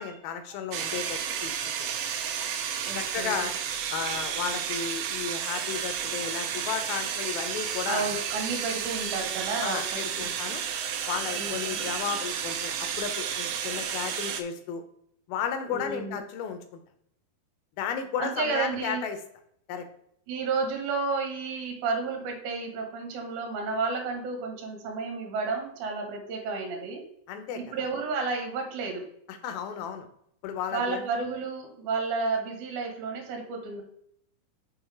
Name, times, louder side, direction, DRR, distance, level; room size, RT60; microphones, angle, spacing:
voice 1, 0.0-2.1 2.9-3.6 3.9-8.1 9.6-10.6 11.1-14.8 15.3-16.8 17.8-19.2 19.7-19.9 27.3-27.8 29.3-30.1 30.4-31.1, left 7 dB, 85° left, 8 dB, 2.8 m, -34 dB
sound 1, 0.7-14.4, right 8 dB, 85° right, 2.5 m, -32 dB
voice 2, 2.8-3.5 7.8-10.3 11.4-11.8 15.7-16.2 18.2-19.0 20.3-27.0 27.6-29.0 30.7-33.8, right 4 dB, 65° right, 3 dB, 2.7 m, -32 dB
6.3 x 4.8 x 4.8 m, 0.70 s
omnidirectional pair, 4.2 m